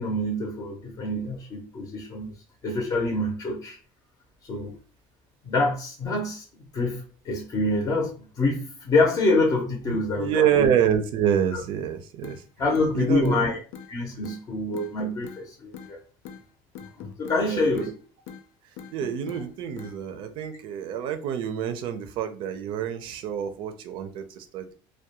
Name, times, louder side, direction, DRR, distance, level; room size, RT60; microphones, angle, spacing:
voice 1, 0.0-2.3 2.6-3.8 4.5-4.7 5.4-6.4 6.7-10.7 11.5-11.6 12.6-13.6 13.9-16.0 17.0-17.9, left 2 dB, 35° left, 0 dB, 0.6 m, -26 dB
voice 2, 9.9-12.4 12.9-13.4 17.4-17.9 18.9-24.7, right 9 dB, 55° right, 8 dB, 0.4 m, -27 dB
sound 1, 12.2-12.4 12.7-13.4 13.7-13.9 14.2-14.4 14.7-15.4 15.7-15.9 16.2-16.4 16.7-17.4 17.7-17.9 18.3-18.4 18.8-19.4 19.8-20.0, left 7 dB, 85° left, 0.4 m, -41 dB
2.3 x 2.1 x 2.8 m, 0.38 s
cardioid pair, 135°, 10 cm